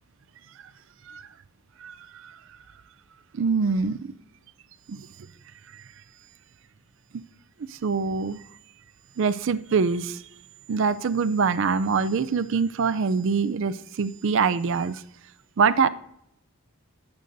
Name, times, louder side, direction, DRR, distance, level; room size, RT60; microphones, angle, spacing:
voice 1, 1.8-2.4 3.3-4.1 4.9-5.1 5.7-5.8 7.1-7.2 7.7-8.4 9.2-10.2 10.7-15.0 15.6-15.9, right 5 dB, 60° right, 13 dB, 0.4 m, -24 dB
17.5 x 8.2 x 2.6 m, 0.78 s
head